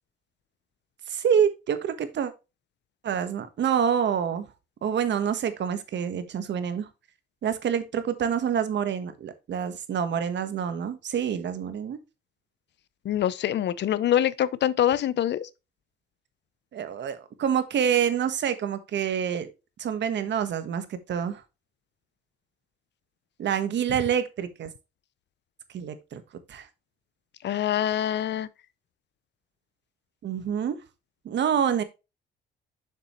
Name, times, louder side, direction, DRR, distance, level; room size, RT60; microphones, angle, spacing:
voice 1, 1.1-2.3 3.0-4.5 4.8-6.9 7.4-12.0 16.7-19.5 19.8-21.4 23.4-24.7 25.7-26.2 26.5-26.7 30.2-30.8 31.2-31.8, right 8 dB, 65° right, 1.3 m, -27 dB
voice 2, 13.0-15.5 27.4-28.5, left 11 dB, 60° left, 0.6 m, -25 dB
6.9 x 6.7 x 3.1 m
cardioid pair, 90°, 20 cm